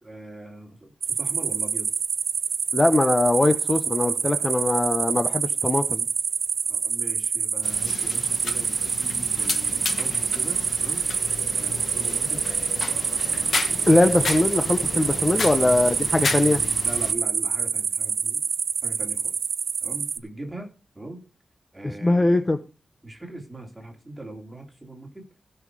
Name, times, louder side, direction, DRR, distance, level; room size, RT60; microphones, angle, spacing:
voice 1, 0.0-1.9 6.7-11.0 11.5-13.4 15.4-15.8 16.8-18.4 18.8-19.3 19.8-20.7 20.9-21.2 21.7-22.4 23.0-25.2, right 1 dB, 10° right, 2 dB, 3.1 m, -40 dB
sound 1, 1.0-20.2, right 6 dB, 75° right, 0.7 m, -26 dB
voice 2, 2.7-6.1 13.9-16.6 22.0-22.6, left 2 dB, 20° left, 8 dB, 0.7 m, -21 dB
sound 2, 7.6-17.1, left 4 dB, 50° left, 1.3 m, -32 dB
16.0 x 5.6 x 4.8 m, 0.31 s
wide cardioid pair, 170°, 0 cm